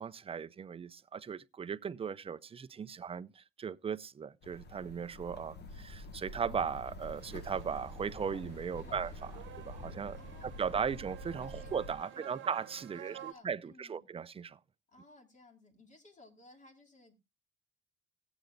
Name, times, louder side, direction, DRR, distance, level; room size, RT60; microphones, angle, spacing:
voice 1, 0.0-14.6, right 6 dB, 30° right, 0.5 m, -38 dB
sound 1, 4.4-11.9, left 1 dB, 60° left, 1.5 m, -47 dB
sound 2, 7.0-13.3, right 11 dB, 75° right, 1.0 m, -52 dB
voice 2, 10.2-11.0 11.5-11.7 12.0-12.4 12.9-14.1 14.9-17.1, left 2 dB, 40° left, 2.7 m, -59 dB
18.0 x 8.0 x 2.5 m
cardioid pair, 90°, 20 cm